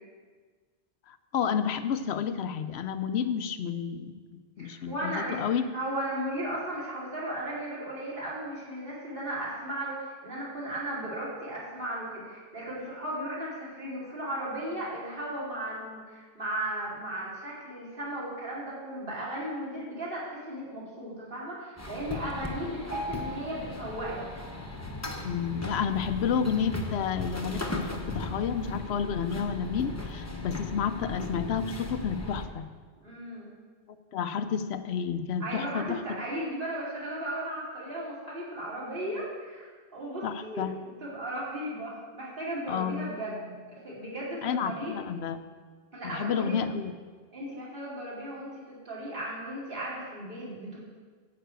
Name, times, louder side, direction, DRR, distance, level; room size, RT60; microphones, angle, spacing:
voice 1, 1.1-5.6 25.2-32.7 34.1-36.0 38.9-39.0 40.2-40.8 42.7-43.1 44.4-45.5 46.0-46.9, left 7 dB, 75° left, 10 dB, 0.9 m, -30 dB
voice 2, 4.6-5.4 5.7-24.2 33.0-33.5 35.4-45.0 45.9-46.5 47.3-48.5 48.8-50.8, right 1 dB, 55° right, -6 dB, 2.9 m, -36 dB
sound 1, 21.8-32.4, left 2 dB, 15° left, 0.9 m, -37 dB
11.0 x 5.2 x 8.1 m, 1.5 s
omnidirectional pair, 1.1 m